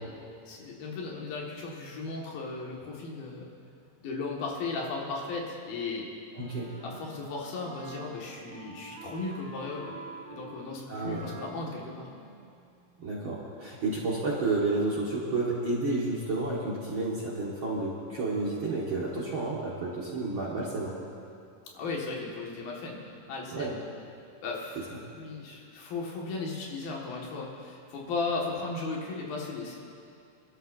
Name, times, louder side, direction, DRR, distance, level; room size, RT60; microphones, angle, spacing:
voice 1, 0.5-3.5 4.0-6.1 6.8-10.0 10.3-12.1 21.7-23.0 23.3-23.8 24.4-24.8 25.1-29.8, left 3 dB, 85° left, -2 dB, 3.5 m, -36 dB
Wind instrument woodwind instrument, 6.3-13.0, right 4 dB, 80° right, 4.6 m, -48 dB
voice 2, 6.4-6.7 10.9-11.3 13.0-21.0 23.5-23.7, right 2 dB, 50° right, -5 dB, 1.6 m, -31 dB
25.5 x 12.5 x 2.6 m, 2.5 s
omnidirectional pair, 4.1 m